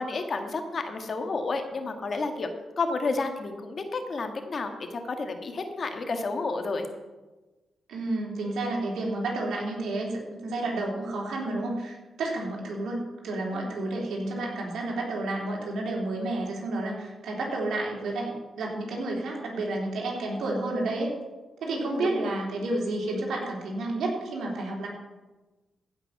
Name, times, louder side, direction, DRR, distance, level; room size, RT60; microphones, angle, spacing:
voice 1, 0.0-2.5 2.8-6.9 13.5-13.7 21.7-22.3, left 3 dB, 50° left, 6 dB, 1.6 m, -31 dB
voice 2, 7.9-13.0 13.2-21.1 21.6-24.9, right 2 dB, 85° right, -1 dB, 3.1 m, -30 dB
15.5 x 5.8 x 5.9 m, 1.2 s
cardioid pair, 80°, 0 cm